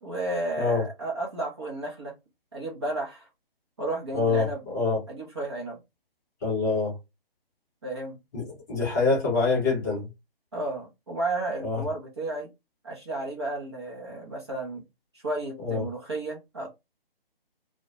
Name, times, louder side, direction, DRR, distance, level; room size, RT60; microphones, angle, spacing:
voice 1, 0.0-2.1 2.5-3.3 3.8-4.6 5.1-5.8 7.8-8.2 10.5-12.5 12.8-14.8 15.2-16.7, right 2 dB, 25° right, 0.5 m, -32 dB
voice 2, 4.1-5.0 6.4-6.9 8.3-10.1 11.6-11.8 15.6-15.9, left 3 dB, 20° left, 0.8 m, -25 dB
2.2 x 2.1 x 2.7 m
figure-of-eight pair, 145°, 30 cm